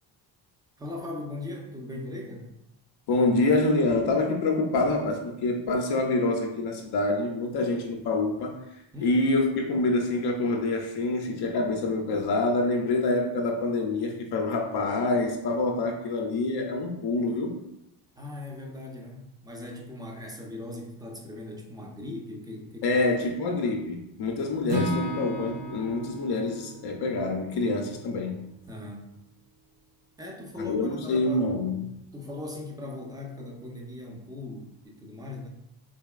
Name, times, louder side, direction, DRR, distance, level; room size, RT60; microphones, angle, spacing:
voice 1, 0.8-2.5 8.9-9.2 18.2-23.0 28.7-29.1 30.2-31.5 32.1-35.5, left 2 dB, 10° right, 0 dB, 0.7 m, -39 dB
voice 2, 3.1-8.6 9.0-17.5 22.8-28.4 30.6-31.8, left 2 dB, 55° left, 2 dB, 0.6 m, -26 dB
Acoustic guitar / Strum, 24.7-28.7, right 1 dB, 60° right, 0.8 m, -34 dB
4.0 x 2.8 x 2.4 m, 0.87 s
cardioid pair, 90°, 47 cm